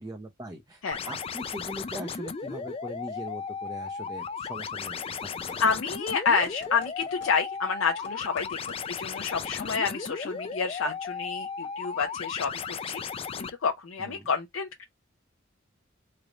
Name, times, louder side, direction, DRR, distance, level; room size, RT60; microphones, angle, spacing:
voice 1, 0.0-5.6 14.0-14.3, right 1 dB, 15° right, 0.6 m, -41 dB
sound 1, 0.9-13.5, left 5 dB, 30° left, 0.3 m, -35 dB
sound 2, 5.5-5.8 6.4-7.4 8.0-8.8 9.5-9.8, left 4 dB, 55° left, 1.2 m, -48 dB
voice 2, 5.6-13.0 13.4-14.8, left 5 dB, 85° left, 0.5 m, -29 dB
3.3 x 2.5 x 3.9 m
head